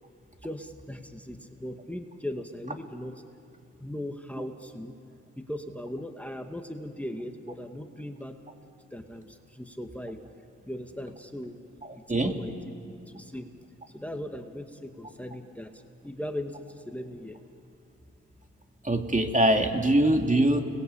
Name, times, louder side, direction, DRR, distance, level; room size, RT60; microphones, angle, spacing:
voice 1, 0.4-3.1 3.8-4.9 5.4-8.3 8.9-10.2 10.7-11.6 11.9-12.5 13.1-13.5 13.9-15.7 16.0-17.4, left 1 dB, 5° left, 5 dB, 2.1 m, -38 dB
voice 2, 18.8-20.6, right 1 dB, 25° right, 4 dB, 3.0 m, -23 dB
30.0 x 21.0 x 8.6 m, 2.6 s
cardioid pair, 55°, 29 cm